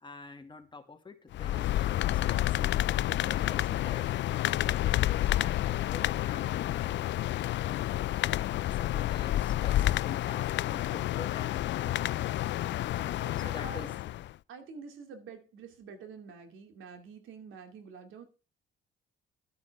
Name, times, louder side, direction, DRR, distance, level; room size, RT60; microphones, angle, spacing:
voice 1, 0.0-7.9 8.7-12.1 13.1-13.9, left 3 dB, 25° left, 4 dB, 2.1 m, -48 dB
sound 1, 1.3-14.3, left 14 dB, 65° left, 0.4 m, -29 dB
voice 2, 13.0-14.0 14.5-18.3, right 5 dB, 85° right, 6 dB, 2.5 m, -48 dB
12.5 x 9.3 x 3.5 m, 0.33 s
cardioid pair, 90°, 20 cm